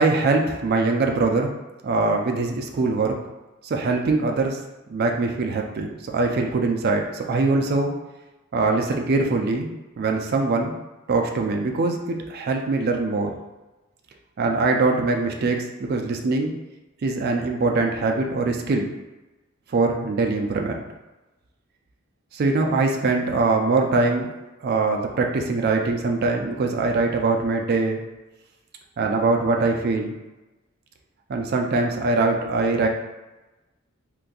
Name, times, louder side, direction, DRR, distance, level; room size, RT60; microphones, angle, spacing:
voice 1, 0.0-1.5 1.8-3.2 3.6-4.6 4.9-7.9 8.5-9.7 10.0-10.7 11.1-13.3 14.4-16.5 17.0-18.9 19.7-20.8 22.3-24.3 24.6-28.0 29.0-30.2 31.3-32.9, right 3 dB, 50° right, 2 dB, 0.3 m, -22 dB
3.8 x 2.6 x 2.3 m, 1.1 s
head